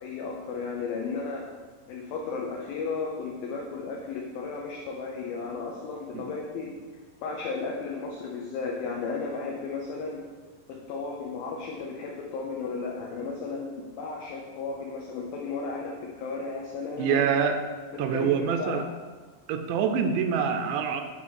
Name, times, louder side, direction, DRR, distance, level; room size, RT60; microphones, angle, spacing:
voice 1, 0.0-1.5 1.9-6.7 7.2-10.2 10.7-17.3 18.1-18.9, left 4 dB, 85° left, -1 dB, 2.1 m, -34 dB
voice 2, 17.0-17.6 18.0-18.9 19.5-21.0, right 7 dB, 80° right, 6 dB, 2.7 m, -25 dB
8.6 x 3.6 x 6.3 m, 1.4 s
omnidirectional pair, 5.2 m